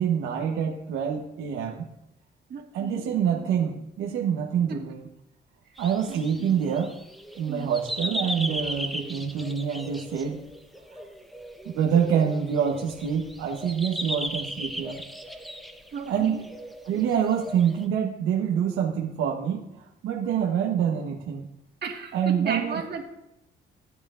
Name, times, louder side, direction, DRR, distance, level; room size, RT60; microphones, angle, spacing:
voice 1, 0.0-1.9 2.7-5.0 5.8-6.9 7.4-10.4 11.7-15.0 16.1-16.4 16.9-21.5 22.1-22.8, right 8 dB, 90° right, 1 dB, 1.0 m, -26 dB
voice 2, 2.5-3.1 4.7-4.8 6.1-6.7 7.5-7.7 15.9-16.4 21.8-23.0, right 5 dB, 55° right, 2 dB, 1.7 m, -35 dB
sound 1, 5.8-17.9, equal, ahead, 0.9 m, -37 dB
15.5 x 8.9 x 2.5 m, 0.86 s
cardioid pair, 90°, 20 cm